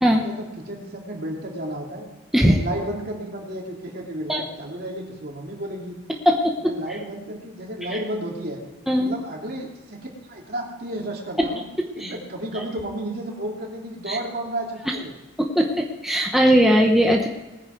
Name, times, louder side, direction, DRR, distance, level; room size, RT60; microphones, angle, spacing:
voice 1, 0.2-2.1 2.5-6.0 6.6-8.6 9.0-11.6 11.9-15.1, right 1 dB, 50° right, -1 dB, 3.3 m, -32 dB
voice 2, 15.4-17.3, equal, ahead, 1 dB, 1.0 m, -19 dB
20.0 x 9.8 x 4.6 m, 1.1 s
head